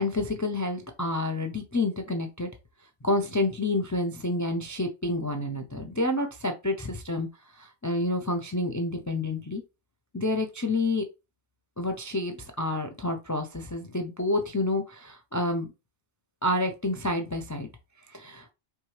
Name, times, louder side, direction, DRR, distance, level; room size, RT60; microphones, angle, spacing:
voice 1, 0.0-2.5 3.0-7.3 7.5-9.6 10.1-11.0 11.8-15.7 16.4-17.7 18.1-18.5, left 2 dB, 25° left, 5 dB, 0.4 m, -29 dB
4.6 x 3.3 x 3.2 m, 0.26 s
omnidirectional pair, 1.2 m